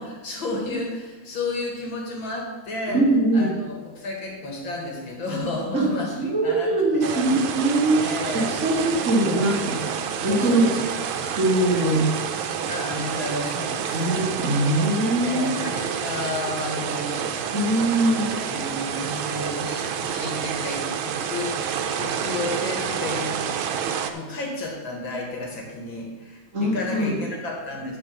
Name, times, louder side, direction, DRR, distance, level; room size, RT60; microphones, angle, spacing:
voice 1, 0.0-3.0 3.3-7.3 8.0-8.5 9.0-9.1 9.4-10.8 12.7-14.1 15.2-17.3 18.0-23.7 24.1-28.0, left 2 dB, 70° left, -1 dB, 2.9 m, -32 dB
voice 2, 2.9-3.5 5.7-5.8 6.2-8.0 8.3-9.8 10.2-10.7 11.2-12.1 13.9-15.5 17.5-18.2 26.5-27.2, right 1 dB, 35° right, -3 dB, 2.3 m, -22 dB
sound 1, 7.0-24.1, right 8 dB, 90° right, 1.6 m, -29 dB
10.5 x 5.1 x 6.7 m, 1.3 s
omnidirectional pair, 2.2 m